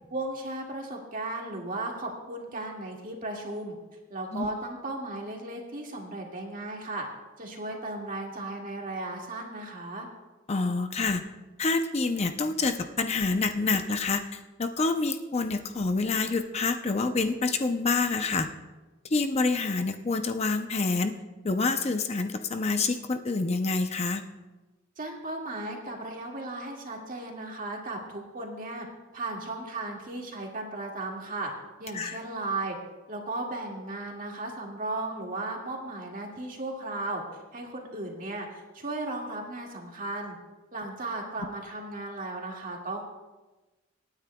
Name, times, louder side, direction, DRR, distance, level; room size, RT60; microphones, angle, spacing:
voice 1, 0.1-3.8 4.1-7.1 7.4-10.1 25.0-28.9 29.1-31.5 31.8-32.8 33.1-37.2 37.5-40.4 40.7-43.0, right 2 dB, 45° right, 0 dB, 2.0 m, -35 dB
voice 2, 10.5-11.2 11.6-18.5 19.1-21.1 21.4-24.2 31.9-32.2, left 3 dB, 35° left, 7 dB, 0.6 m, -27 dB
26.0 x 9.5 x 2.3 m, 1.2 s
head